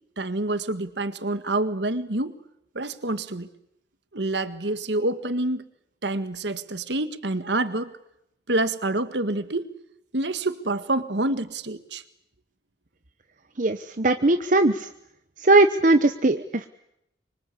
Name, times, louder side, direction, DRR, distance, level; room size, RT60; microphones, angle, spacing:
voice 1, 0.2-2.4 2.7-3.5 4.1-5.7 6.0-7.9 8.5-9.7 10.1-12.0, right 2 dB, 75° right, 12 dB, 1.7 m, -27 dB
voice 2, 13.6-14.9 15.4-16.7, right 2 dB, 45° right, 9 dB, 1.0 m, -19 dB
25.0 x 24.5 x 8.3 m, 0.79 s
head